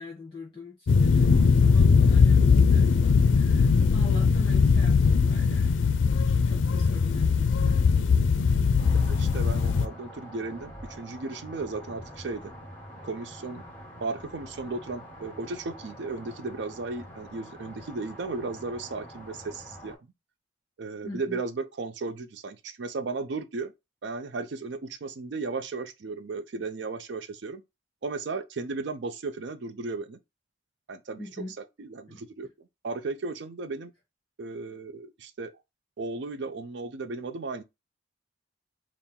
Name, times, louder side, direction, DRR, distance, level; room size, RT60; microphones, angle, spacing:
voice 1, 0.0-6.0 6.4-8.9 21.0-21.4 31.2-31.6 32.1-32.2, left 2 dB, 25° left, 1.1 m, -43 dB
sound 1, 0.9-9.9, left 5 dB, 90° left, 0.4 m, -20 dB
sound 2, 8.8-20.0, equal, 10° left, 1.7 m, -46 dB
voice 2, 8.9-12.5 13.0-13.6 14.0-20.0 20.8-23.7 24.0-27.6 28.0-30.2 30.9-31.2 31.8-33.9 34.4-35.5 36.0-37.6, right 3 dB, 75° right, 0.5 m, -35 dB
3.6 x 2.0 x 4.3 m
head